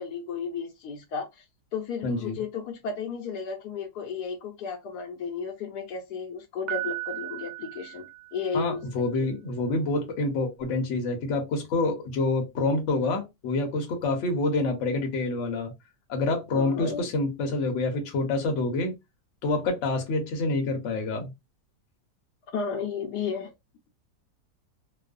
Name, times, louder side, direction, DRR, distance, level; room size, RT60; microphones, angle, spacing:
voice 1, 0.0-1.4 1.7-8.0 8.3-8.8 9.2-9.3 16.5-17.1 22.5-23.5, left 5 dB, 75° left, 1.1 m, -33 dB
voice 2, 2.0-2.4 8.5-15.7 16.1-18.9 19.4-21.3, left 2 dB, 55° left, 0.9 m, -27 dB
Piano, 6.7-8.8, right 17 dB, 90° right, 1.3 m, -36 dB
3.0 x 2.0 x 2.4 m
omnidirectional pair, 1.8 m